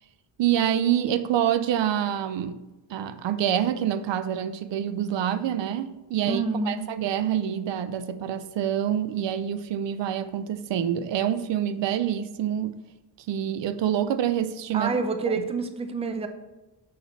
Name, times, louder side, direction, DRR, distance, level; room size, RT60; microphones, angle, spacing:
voice 1, 0.4-2.6 2.9-12.8 13.3-14.9 15.4-15.5, right 10 dB, 80° right, 0.6 m, -26 dB
voice 2, 6.2-6.8 14.7-16.3, right 4 dB, 15° right, 0.4 m, -27 dB
6.5 x 5.8 x 4.0 m
wide cardioid pair, 165°, 43 cm